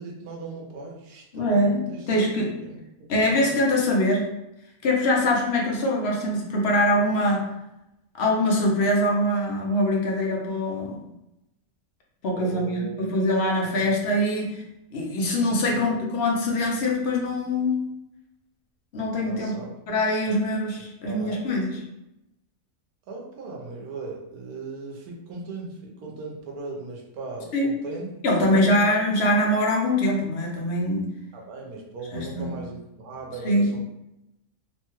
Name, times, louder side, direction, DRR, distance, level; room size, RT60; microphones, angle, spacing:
voice 1, 0.0-2.1 2.6-2.8 3.2-3.6 12.3-12.9 13.6-13.8 15.5-16.0 19.2-19.8 20.3-20.4 21.1-21.4 23.1-28.8 31.3-33.8, right 3 dB, 80° right, -1 dB, 1.2 m, -38 dB
voice 2, 1.3-2.5 3.1-4.3 4.8-7.4 8.1-11.0 12.2-12.7 13.0-14.6 14.9-17.8 18.9-19.5 19.9-21.7 27.5-27.7 28.2-31.1 32.1-32.5 33.4-33.8, left 1 dB, 60° left, -1 dB, 0.7 m, -23 dB
3.0 x 2.2 x 3.0 m, 0.88 s
omnidirectional pair, 1.6 m